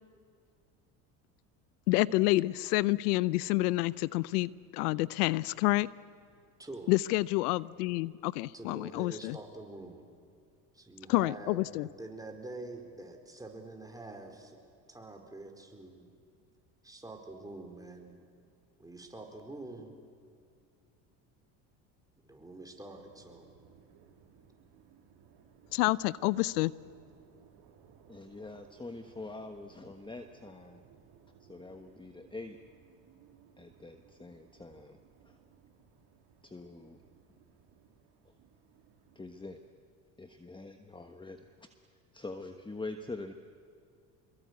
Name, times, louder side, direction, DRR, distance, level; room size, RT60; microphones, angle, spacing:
voice 1, 1.9-5.9 6.9-9.4 11.1-11.9 25.7-26.7, left 20 dB, 80° left, 21 dB, 0.7 m, -28 dB
voice 2, 6.6-7.0 8.5-10.0 10.7-11.6 12.0-14.6 14.9-16.1 16.8-18.3 18.8-19.9 22.2-23.5, right 2 dB, 10° right, 2 dB, 4.8 m, -46 dB
sound 1, 23.0-39.7, right 7 dB, 60° right, 3.6 m, -62 dB
voice 3, 28.1-30.8 31.4-32.6 33.6-35.0 35.2-35.4 36.4-37.0 38.2-38.3 39.1-39.6 40.2-41.7 42.1-43.3, left 2 dB, 10° left, 7 dB, 1.3 m, -44 dB
26.0 x 22.0 x 8.3 m, 2.3 s
hypercardioid pair, 75°, 45 cm